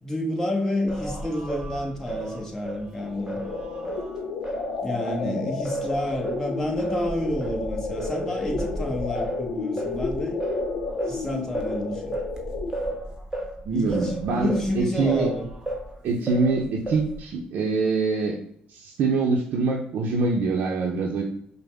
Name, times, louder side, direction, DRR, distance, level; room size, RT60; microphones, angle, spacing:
voice 1, 0.0-3.4 4.8-10.4 11.1-12.2 13.7-15.5, left 1 dB, 15° left, 0 dB, 1.1 m, -30 dB
Singing, 0.9-5.2 5.6-15.9 16.3-17.3, right 1 dB, 20° right, 0.9 m, -33 dB
sound 1, 3.0-13.0, left 4 dB, 85° left, 0.6 m, -32 dB
voice 2, 5.0-5.5 13.7-15.3 16.0-18.4 18.7-21.2, right 4 dB, 70° right, -1 dB, 0.6 m, -25 dB
5.2 x 2.1 x 3.3 m, 0.66 s
cardioid pair, 80°, 3 cm